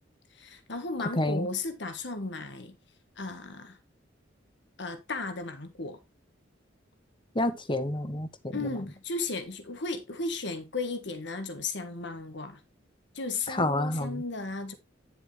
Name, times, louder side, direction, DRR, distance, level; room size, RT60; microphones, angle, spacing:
voice 1, 0.3-2.8 3.2-3.8 4.8-6.0 8.5-12.6 13.1-14.7, left 3 dB, 65° left, 1.6 m, -35 dB
voice 2, 1.2-1.5 7.3-8.6 13.5-14.2, left 1 dB, 25° left, 1.1 m, -29 dB
10.5 x 6.4 x 3.3 m
head